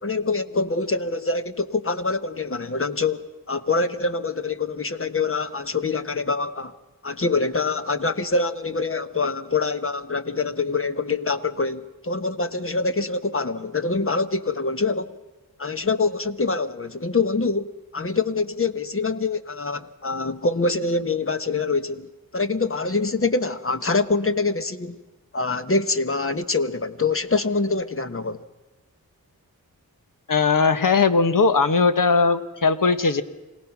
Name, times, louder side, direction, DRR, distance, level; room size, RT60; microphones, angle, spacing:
voice 1, 0.0-6.7 7.0-15.2 15.6-25.0 25.3-28.4, left 3 dB, 35° left, 1.2 m, -25 dB
voice 2, 30.3-33.2, left 4 dB, 60° left, 1.2 m, -19 dB
26.0 x 17.5 x 6.0 m
cardioid pair, 50°, 37 cm